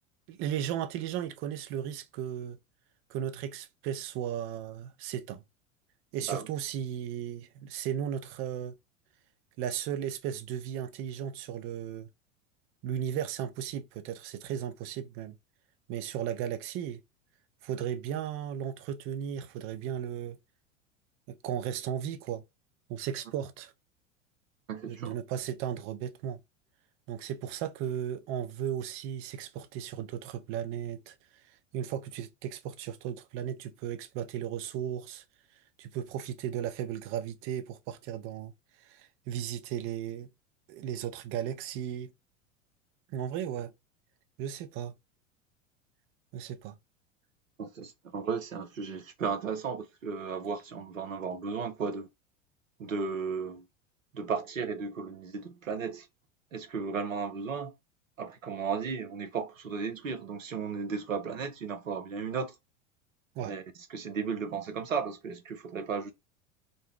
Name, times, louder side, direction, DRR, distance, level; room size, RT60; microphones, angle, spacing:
voice 1, 0.3-2.6 3.1-5.4 6.1-8.8 9.6-12.1 12.8-15.4 15.9-17.0 17.6-20.4 21.3-22.4 22.9-23.7 24.9-26.4 27.1-31.1 31.7-35.2 35.8-38.5 38.8-40.3 40.7-42.1 43.1-43.7 44.4-44.9 46.3-46.8 63.4-63.5, right 10 dB, 35° right, 0.5 m, -35 dB
voice 2, 24.7-25.1 47.6-52.1 52.8-53.6 54.1-56.1 56.5-57.7 58.2-62.6 63.4-63.6 63.9-66.1, right 5 dB, 85° right, 0.7 m, -35 dB
2.6 x 2.1 x 3.5 m
figure-of-eight pair, 85°, 39 cm